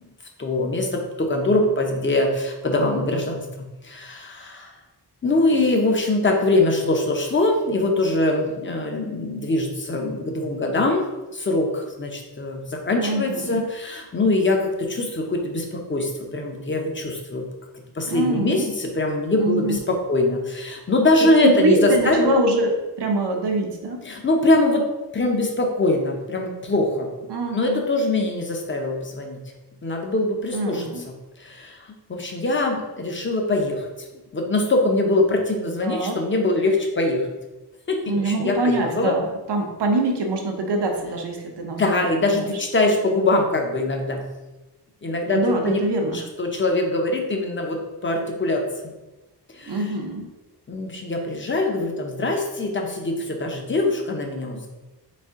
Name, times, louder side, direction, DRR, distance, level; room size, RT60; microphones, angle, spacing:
voice 1, 0.4-4.7 5.2-11.1 11.3-17.5 17.9-22.4 24.0-24.8 25.1-27.3 27.5-29.4 29.8-31.1 31.4-33.9 34.3-37.3 37.9-39.1 41.7-44.2 45.0-45.8 46.1-48.9 49.5-49.9 50.7-54.7, left 2 dB, 30° left, 2 dB, 0.6 m, -23 dB
voice 2, 13.0-13.7 18.1-18.7 19.4-19.8 21.4-22.7 23.0-24.0 27.3-27.8 30.5-31.0 35.8-36.2 38.1-41.8 42.3-42.4 45.3-46.2 49.7-50.3, right 2 dB, 70° right, 3 dB, 0.8 m, -24 dB
4.2 x 2.6 x 3.6 m, 1.1 s
wide cardioid pair, 110°, 42 cm